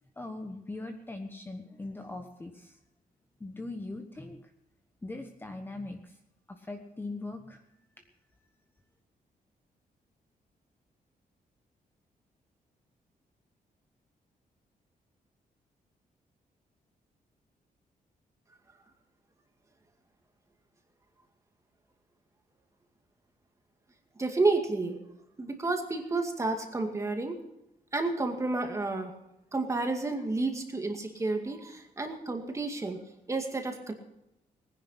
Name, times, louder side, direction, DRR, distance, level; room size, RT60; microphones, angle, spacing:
voice 1, 0.2-2.7 3.4-4.4 5.0-6.0 6.7-7.6, left 2 dB, 15° left, 4 dB, 1.1 m, -40 dB
voice 2, 24.2-25.0 25.4-27.3 27.9-29.1 29.5-33.0 33.3-33.9, right 3 dB, 20° right, 4 dB, 2.1 m, -30 dB
19.0 x 10.5 x 5.7 m, 0.86 s
wide cardioid pair, 150°, 15 cm